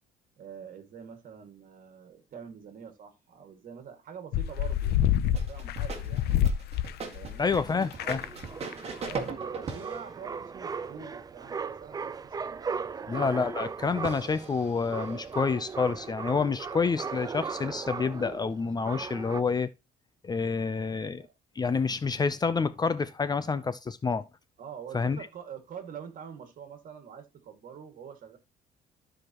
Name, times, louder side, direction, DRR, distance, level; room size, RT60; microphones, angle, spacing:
voice 1, 0.4-5.0 5.3-6.4 7.1-7.5 8.9-13.2 20.7-21.3 24.6-28.4, right 7 dB, 55° right, 2.2 m, -46 dB
sound 1, 4.3-7.6 7.9-8.4 8.7-8.8 9.0-9.2, left 11 dB, 70° left, 0.7 m, -27 dB
sound 2, 5.3-10.1 13.2-13.3 14.0-16.1, right 4 dB, 40° right, 2.1 m, -40 dB
voice 2, 7.4-8.3 13.1-19.7 20.2-21.3 21.6-24.3 24.9-25.2, left 5 dB, 25° left, 0.6 m, -28 dB
sound 3, 7.8-19.4, right 5 dB, 20° right, 0.4 m, -38 dB
14.0 x 5.0 x 3.0 m
cardioid pair, 110°, 17 cm